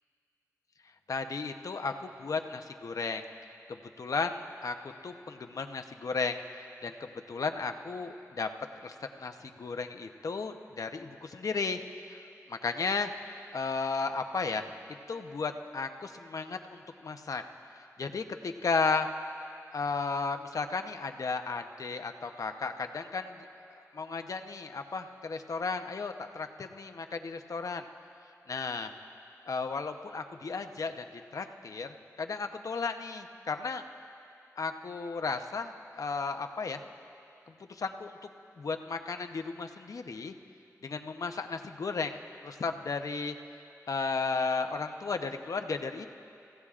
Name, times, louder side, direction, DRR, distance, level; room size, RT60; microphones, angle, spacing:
voice 1, 1.1-3.3 3.7-8.5 8.8-11.8 12.1-12.2 12.5-13.1 13.5-17.4 18.0-19.1 19.7-27.9 28.5-28.9 29.5-33.8 34.6-36.8 37.7-38.2 38.6-40.3 40.8-42.2 42.4-43.3 43.9-46.1, left 4 dB, 70° left, 6 dB, 0.8 m, -34 dB
29.5 x 16.0 x 2.5 m, 2.6 s
cardioid pair, 55°, 6 cm